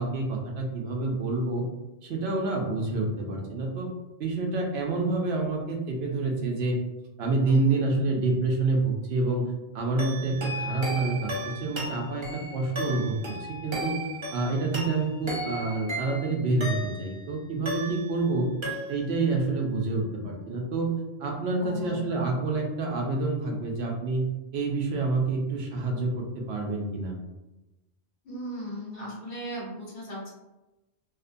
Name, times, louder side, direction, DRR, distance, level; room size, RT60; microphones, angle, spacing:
voice 1, 0.0-1.6 2.0-3.9 4.2-6.8 7.2-13.9 14.3-18.5 18.9-20.9 21.2-24.3 24.5-27.1, right 3 dB, 75° right, 0 dB, 0.8 m, -28 dB
sound 1, 10.0-17.2 17.6-18.3 18.6-19.2, equal, 45° right, 0.4 m, -35 dB
voice 2, 21.6-22.0 28.2-30.3, equal, 60° left, -6 dB, 1.2 m, -37 dB
2.7 x 2.1 x 2.5 m, 1.0 s
omnidirectional pair, 1.1 m